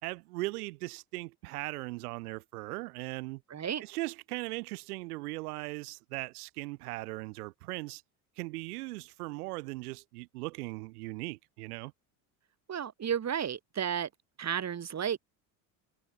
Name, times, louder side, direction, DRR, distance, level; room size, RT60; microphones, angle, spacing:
voice 1, 0.0-3.4 3.8-8.0 8.4-11.9, right 22 dB, 90° right, 3.4 m, -39 dB
voice 2, 3.5-3.8 12.7-14.1 14.4-15.2, right 8 dB, 35° right, 3.7 m, -32 dB
supercardioid pair, 95°, 44 cm